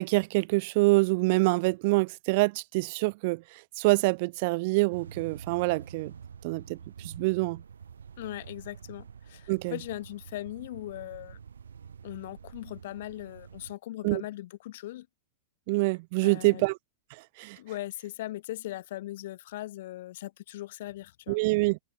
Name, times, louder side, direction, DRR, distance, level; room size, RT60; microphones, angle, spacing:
voice 1, 0.0-3.4 3.8-6.1 6.4-6.8 7.0-7.6 9.5-9.7 14.0-14.2 15.7-16.8 17.4-17.6 21.3-21.8, right 25 dB, 55° right, 0.4 m, -25 dB
sound 1, 4.9-13.7, right 7 dB, 85° right, 7.7 m, -47 dB
voice 2, 8.2-11.4 12.0-15.1 16.2-16.6 17.6-21.4, left 15 dB, 65° left, 3.2 m, -39 dB
hypercardioid pair, 110°, 0 cm